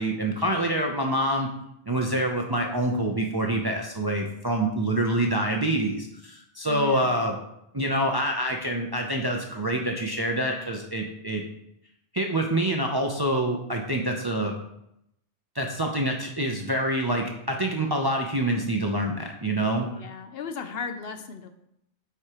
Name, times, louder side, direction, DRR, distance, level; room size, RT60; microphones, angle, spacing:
voice 1, 0.0-1.5 1.9-7.4 7.7-11.4 12.1-14.5 15.5-19.9, right 1 dB, 30° right, 1 dB, 0.5 m, -26 dB
voice 2, 6.6-7.1 20.0-21.5, left 5 dB, 65° left, 8 dB, 0.8 m, -36 dB
8.2 x 4.7 x 2.9 m, 0.79 s
omnidirectional pair, 1.1 m